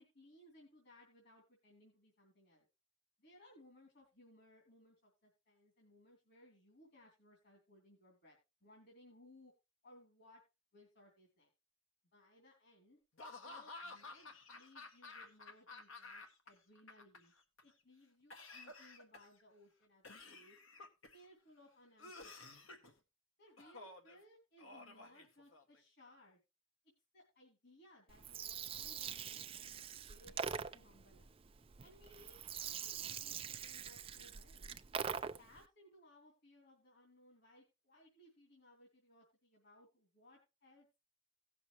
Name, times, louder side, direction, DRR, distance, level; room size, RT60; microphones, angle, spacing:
voice 1, 0.0-2.7 3.2-9.5 9.8-10.4 10.7-11.5 12.1-13.0 13.4-17.3 17.6-20.6 21.1-22.8 23.4-26.4 27.1-31.3 31.8-34.7 35.4-41.0, left 1 dB, 55° left, -1 dB, 3.0 m, -64 dB
Laughter / Cough, 13.2-16.5 16.8-17.6 18.3-19.4 20.0-21.2 22.0-22.9 23.6-24.2 24.6-25.8, left 3 dB, 75° left, 1.7 m, -53 dB
Gurgling, 28.1-35.6, right 7 dB, 25° right, 0.4 m, -44 dB
17.5 x 6.8 x 3.0 m, 0.26 s
head